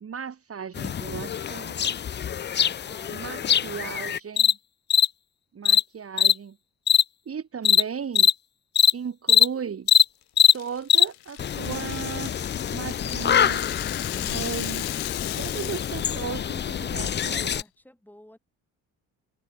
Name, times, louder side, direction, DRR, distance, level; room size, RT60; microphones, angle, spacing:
voice 1, 0.0-2.0 2.7-2.8 3.1-4.5 5.5-6.6 7.3-8.3 8.9-9.9 10.5-12.3 12.7-13.6 14.2-14.9 15.4-17.5, right 7 dB, 35° right, 1.9 m, -36 dB
sound 1, 0.8-4.5 4.9-5.1 5.7-5.8 6.2-6.3 6.9-7.0 7.7-7.8 8.2-8.3 8.8-8.9 9.3-9.5 9.9-10.0 10.4-10.5 10.9-11.1 11.4-17.6, left 8 dB, 30° left, 0.5 m, -23 dB
voice 2, 2.6-4.5 16.8-18.4, left 1 dB, 5° left, 8.0 m, -53 dB
Rattle (instrument), 10.5-16.3 16.6-16.8 17.2-17.6, left 18 dB, 80° left, 1.7 m, -36 dB
cardioid pair, 80°, 38 cm